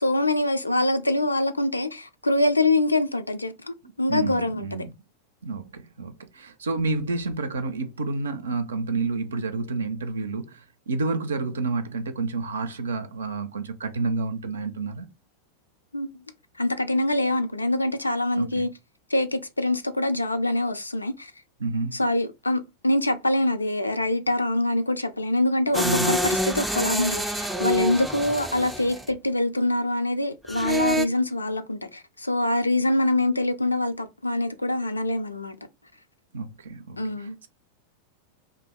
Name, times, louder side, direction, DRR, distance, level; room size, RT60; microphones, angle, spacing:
voice 1, 0.0-4.7 15.9-16.2 16.6-18.7 19.1-21.3 21.9-35.6 37.0-37.4, left 1 dB, 80° left, 0.4 m, -24 dB
voice 2, 4.1-4.9 5.4-15.1 18.4-18.7 21.6-22.0 25.8-26.2 36.3-37.5, right 3 dB, 65° right, 0.5 m, -29 dB
sound 1, 25.7-29.1 30.5-31.1, equal, ahead, 0.4 m, -27 dB
2.7 x 2.6 x 4.3 m
figure-of-eight pair, 90°, 0 cm